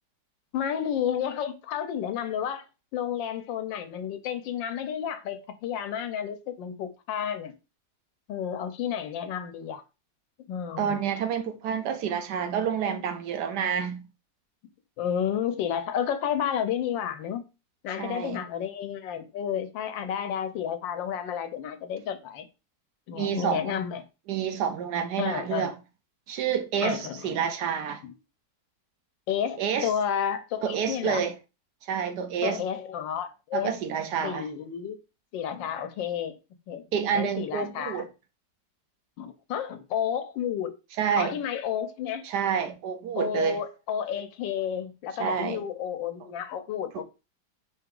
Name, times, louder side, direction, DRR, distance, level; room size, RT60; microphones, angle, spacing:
voice 1, 0.5-2.6 2.9-7.5 8.3-9.8 10.5-11.0 15.0-17.4 17.8-22.5 23.1-24.0 25.2-25.7 26.8-27.3 28.0-28.1 29.3-31.2 32.4-33.7 34.2-35.0 35.3-36.3 36.7-36.9 37.1-38.0 39.2-40.8 41.2-42.2 43.2-47.0, left 9 dB, 85° left, 1.4 m, -31 dB
voice 2, 10.8-14.0 18.0-18.4 23.1-23.8 24.3-25.7 26.3-28.0 29.6-29.9 30.6-31.3 31.8-32.6 33.5-34.5 36.9-38.1 41.0-41.4 42.2-43.6 45.2-45.6 46.9-47.0, right 7 dB, 70° right, 1.1 m, -28 dB
4.9 x 2.9 x 3.7 m
omnidirectional pair, 2.0 m